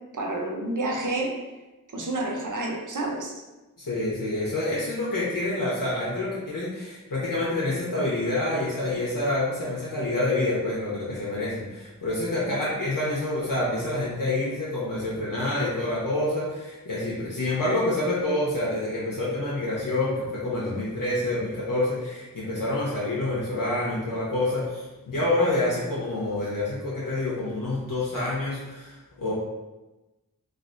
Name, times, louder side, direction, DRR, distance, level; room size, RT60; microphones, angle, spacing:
voice 1, 0.1-1.4 1.9-3.3 12.5-12.7, right 2 dB, 60° right, 0 dB, 0.6 m, -29 dB
voice 2, 3.8-29.3, left 2 dB, 70° left, -7 dB, 0.7 m, -27 dB
3.2 x 2.4 x 2.5 m, 1.1 s
wide cardioid pair, 40°, 34 cm